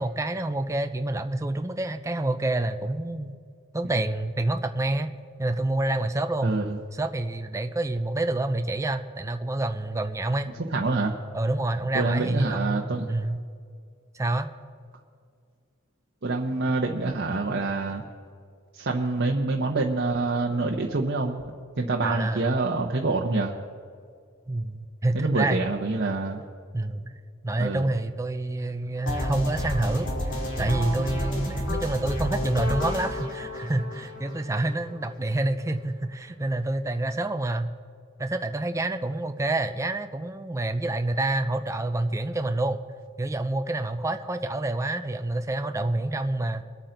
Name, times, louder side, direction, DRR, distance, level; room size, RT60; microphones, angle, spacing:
voice 1, 0.0-3.3 3.7-5.1 5.4-6.5 6.9-10.5 11.3-13.4 14.1-14.5 22.0-22.5 24.5-25.6 26.7-27.1 27.4-37.7 38.2-42.8 43.2-46.6, right 2 dB, 15° right, 7 dB, 0.5 m, -28 dB
voice 2, 6.4-6.8 10.7-11.1 11.9-13.1 16.2-18.0 18.7-21.4 21.8-23.5 25.1-26.4 27.6-27.8, right 3 dB, 50° right, 0 dB, 0.9 m, -26 dB
sound 1, 29.1-35.0, left 1 dB, 60° left, 2.6 m, -31 dB
23.5 x 8.7 x 3.9 m, 2.2 s
head